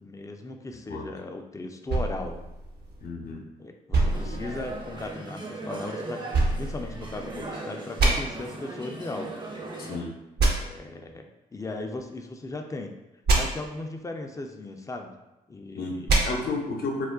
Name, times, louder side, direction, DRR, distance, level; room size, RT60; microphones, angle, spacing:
voice 1, 0.0-2.4 3.2-6.3 6.6-9.4 10.5-12.9 13.3-15.2 15.5-16.1, left 2 dB, 15° left, 4 dB, 0.4 m, -37 dB
sound 1, 1.9-3.3 3.9-5.1 6.3-7.5 8.0-8.1 10.4-10.5 13.3-13.4 16.1-16.2, right 3 dB, 60° right, 0.7 m, -25 dB
voice 2, 3.0-3.4 9.9-10.1 15.8-17.1, left 3 dB, 55° left, 0 dB, 0.7 m, -32 dB
sound 2, 4.0-10.0, right 2 dB, 25° right, 0.6 m, -38 dB
2.3 x 2.1 x 3.6 m, 0.98 s
hypercardioid pair, 45°, 19 cm